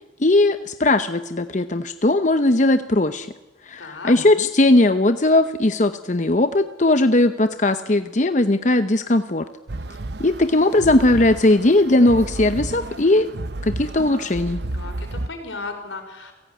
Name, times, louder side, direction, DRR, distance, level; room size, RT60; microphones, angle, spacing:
voice 1, 0.2-3.3 3.7-9.5 10.2-13.3 13.6-14.6, left 2 dB, 40° left, 10 dB, 0.8 m, -18 dB
voice 2, 3.8-4.1 14.7-16.3, left 3 dB, 85° left, 5 dB, 5.3 m, -35 dB
sound 1, 9.7-15.3, right 2 dB, 60° right, 0.9 m, -32 dB
29.5 x 17.0 x 9.5 m, 1.1 s
head